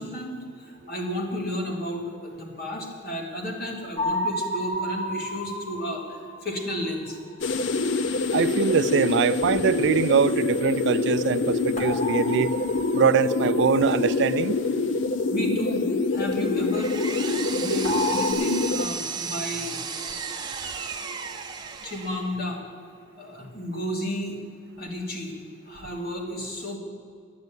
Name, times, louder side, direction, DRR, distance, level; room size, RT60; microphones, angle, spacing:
voice 1, 0.0-7.2 10.4-10.5 15.3-17.0 17.5-19.8 21.8-22.6 23.2-24.4 24.8-25.3 25.7-26.8, equal, 55° left, 0 dB, 2.6 m, -32 dB
sound 1, 4.0-6.9 11.8-13.9 17.8-18.3, left 1 dB, 40° left, 2.3 m, -31 dB
sound 2, 7.4-18.9, left 3 dB, 70° left, 0.6 m, -26 dB
voice 2, 8.3-12.5 12.9-14.6 21.0-21.2, right 6 dB, 65° right, 13 dB, 0.4 m, -23 dB
Power tool, 16.3-22.4, right 5 dB, 25° right, 0.9 m, -34 dB
10.5 x 9.5 x 9.4 m, 2.3 s
head